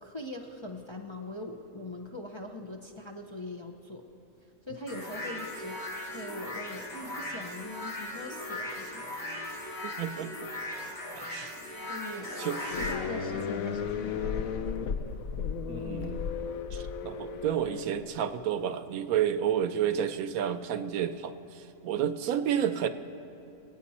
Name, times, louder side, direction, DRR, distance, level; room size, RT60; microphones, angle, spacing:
voice 1, 0.0-4.0 4.7-9.1 11.9-12.3 12.7-14.6, left 1 dB, 30° left, 1 dB, 0.6 m, -42 dB
sound 1, 4.9-12.9, left 1 dB, 50° left, 2.5 m, -38 dB
voice 2, 9.8-10.3 11.2-11.5 12.4-12.6 15.7-16.2 16.7-21.3 21.8-22.9, right 9 dB, 85° right, 11 dB, 1.1 m, -30 dB
sound 2, 12.7-18.0, left 6 dB, 75° left, 1.1 m, -34 dB
24.5 x 9.0 x 4.2 m, 2.9 s
omnidirectional pair, 1.5 m